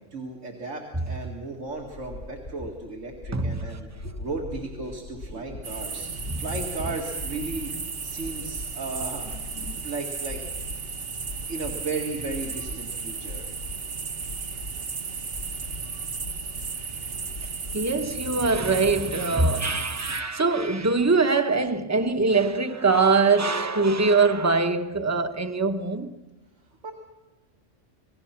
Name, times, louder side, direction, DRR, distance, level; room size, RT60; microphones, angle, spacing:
voice 1, 0.0-7.7 8.0-9.3 9.8-10.4 11.5-13.6 26.8-26.9, right 3 dB, 80° right, 2.5 m, -35 dB
sound 1, 1.8-19.5, left 1 dB, 85° left, 3.2 m, -42 dB
voice 2, 3.3-3.7 6.3-6.4 9.6-9.8 17.7-26.2, right 3 dB, 15° right, 0.9 m, -23 dB
sound 2, 5.6-20.2, right 5 dB, 55° right, 1.3 m, -34 dB
27.5 x 19.0 x 5.9 m
omnidirectional pair, 1.3 m